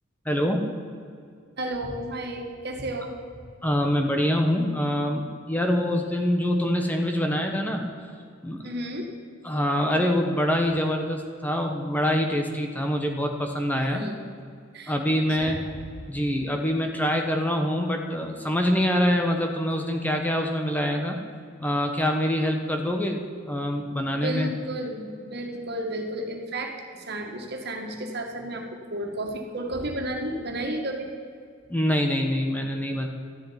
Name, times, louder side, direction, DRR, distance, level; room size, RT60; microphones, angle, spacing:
voice 1, 0.2-0.7 3.6-7.9 8.4-8.7 9.4-14.1 14.9-15.6 16.1-21.2 21.6-23.2 23.5-24.5 31.7-33.1, equal, 10° left, 3 dB, 1.2 m, -25 dB
voice 2, 1.6-3.1 8.6-9.1 13.8-14.2 14.7-15.6 24.1-31.1, right 1 dB, 55° right, 2 dB, 2.1 m, -32 dB
13.0 x 7.6 x 9.9 m, 2.2 s
head